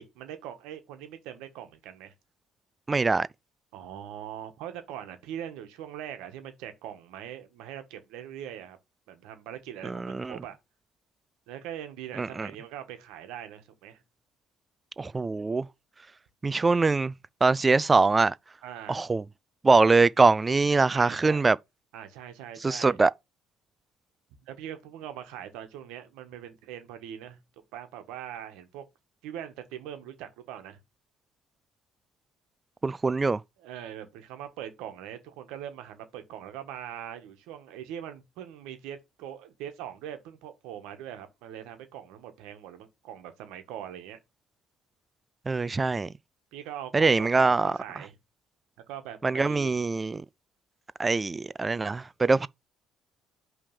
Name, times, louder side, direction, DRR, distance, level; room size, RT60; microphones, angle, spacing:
voice 1, 0.0-2.1 3.7-8.8 9.1-10.6 11.5-14.0 18.6-19.0 20.9-21.4 21.9-23.0 24.4-27.4 27.7-28.8 29.2-30.8 33.6-44.2 46.5-48.1 48.9-49.8, right 10 dB, 80° right, 1.3 m, -41 dB
voice 2, 2.9-3.3 9.8-10.3 12.2-12.5 15.0-15.7 16.4-17.1 17.4-18.3 18.9-19.2 19.6-21.6 22.6-23.1 32.8-33.4 45.5-46.1 46.9-47.7 49.2-50.2 51.0-52.5, right 3 dB, 25° right, 0.3 m, -23 dB
5.5 x 3.3 x 5.3 m
supercardioid pair, 70°, 0 cm